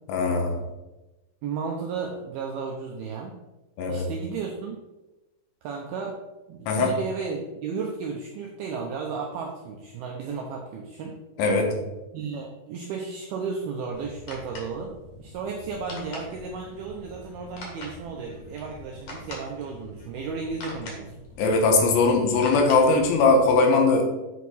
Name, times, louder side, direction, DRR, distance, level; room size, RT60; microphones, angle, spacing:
voice 1, 0.1-0.6 3.8-4.1 6.7-6.9 11.4-11.9 21.4-24.1, left 3 dB, 80° left, 2 dB, 3.3 m, -20 dB
voice 2, 1.4-3.4 3.8-4.8 5.6-6.2 6.5-11.2 12.1-14.9 15.2-21.1, right 5 dB, 90° right, 1 dB, 2.2 m, -34 dB
sound 1, 13.9-23.5, left 2 dB, 50° left, 2.1 m, -43 dB
8.1 x 4.7 x 4.1 m, 1.1 s
omnidirectional pair, 5.3 m